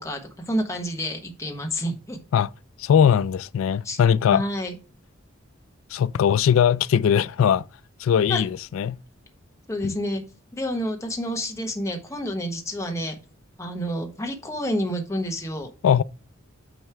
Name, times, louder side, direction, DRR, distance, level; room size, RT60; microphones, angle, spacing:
voice 1, 0.0-2.2 3.8-4.0 4.3-4.7 8.3-8.4 9.7-10.2 10.5-13.2 13.6-15.7, equal, 15° left, 1.1 m, -29 dB
voice 2, 2.8-4.4 5.9-7.6 8.0-9.0 9.8-10.0 15.8-16.0, left 8 dB, 70° left, 0.3 m, -20 dB
9.1 x 3.2 x 4.5 m
head